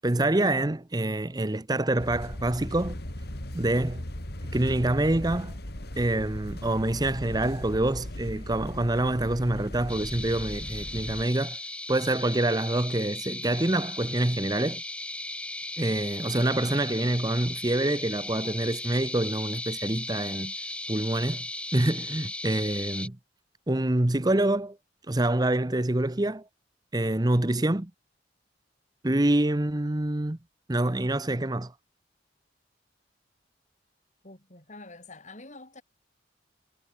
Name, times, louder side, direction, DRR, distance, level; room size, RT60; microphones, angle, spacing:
voice 1, 0.0-3.0 3.5-4.0 4.5-5.6 6.0-11.6 11.9-14.8 15.8-20.5 20.9-21.4 21.7-23.2 23.7-24.8 25.1-26.5 26.9-27.9 29.0-30.4 30.7-31.7, right 1 dB, 20° right, 0.8 m, -26 dB
sound 1, 2.0-11.3, left 1 dB, 55° left, 3.3 m, -38 dB
sound 2, 9.9-23.1, left 2 dB, 5° left, 2.7 m, -37 dB
voice 2, 34.2-35.8, left 2 dB, 40° left, 6.0 m, -46 dB
head